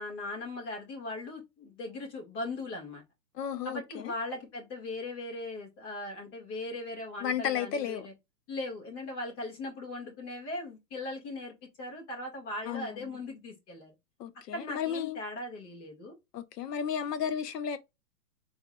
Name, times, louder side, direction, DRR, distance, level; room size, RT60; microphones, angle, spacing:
voice 1, 0.0-3.0 3.6-8.1 8.5-13.9 14.5-16.1, left 2 dB, 45° left, 2.2 m, -39 dB
voice 2, 3.3-4.1 7.2-8.1 12.7-13.1 14.2-15.2 16.3-17.8, left 8 dB, 70° left, 0.9 m, -33 dB
4.0 x 3.6 x 2.4 m
hypercardioid pair, 160°, 49 cm